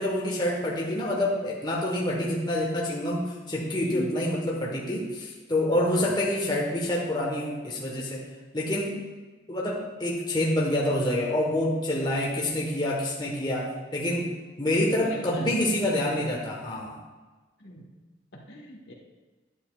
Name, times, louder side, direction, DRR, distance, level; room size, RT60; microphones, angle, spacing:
voice 1, 0.0-8.2 8.5-9.0 9.5-14.3 14.6-17.0, left 1 dB, 25° left, -3 dB, 1.3 m, -27 dB
voice 2, 15.0-15.6 17.6-17.9 18.3-18.9, left 1 dB, 60° left, -1 dB, 1.6 m, -39 dB
11.5 x 9.8 x 2.4 m, 1.3 s
head